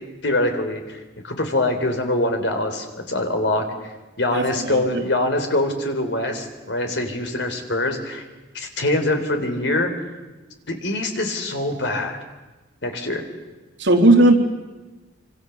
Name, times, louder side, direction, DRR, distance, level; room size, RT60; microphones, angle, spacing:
voice 1, 0.2-3.6 4.2-8.2 8.5-9.9 10.7-12.2 12.8-13.3, left 1 dB, 70° left, 6 dB, 3.7 m, -24 dB
voice 2, 4.3-5.0 13.8-14.4, right 2 dB, 70° right, 2 dB, 3.4 m, -16 dB
27.0 x 26.0 x 7.1 m, 1.2 s
head